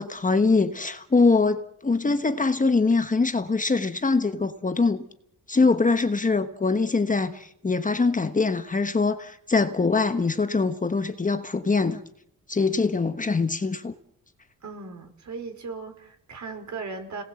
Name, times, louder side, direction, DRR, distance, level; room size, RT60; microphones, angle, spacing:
voice 1, 0.0-5.0 5.5-12.0 12.5-13.9, left 4 dB, 25° left, 1.2 m, -23 dB
voice 2, 14.6-17.2, right 4 dB, 55° right, 4.7 m, -37 dB
30.0 x 19.0 x 7.7 m
wide cardioid pair, 130°, 34 cm